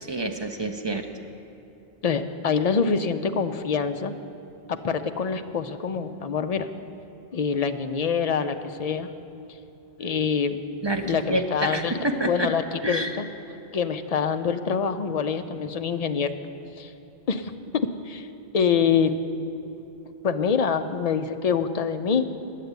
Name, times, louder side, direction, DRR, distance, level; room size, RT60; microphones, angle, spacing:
voice 1, 0.0-1.1 10.8-12.5 12.8-13.1, right 1 dB, 35° right, 4 dB, 0.5 m, -28 dB
voice 2, 2.0-4.1 4.7-6.7 7.3-9.1 10.0-10.6 11.0-12.0 12.2-13.3 13.7-16.3 16.8-16.9 17.3-18.3 18.5-19.1 20.2-22.3, left 6 dB, 50° left, 8 dB, 0.5 m, -25 dB
10.0 x 8.3 x 8.0 m, 2.9 s
omnidirectional pair, 1.0 m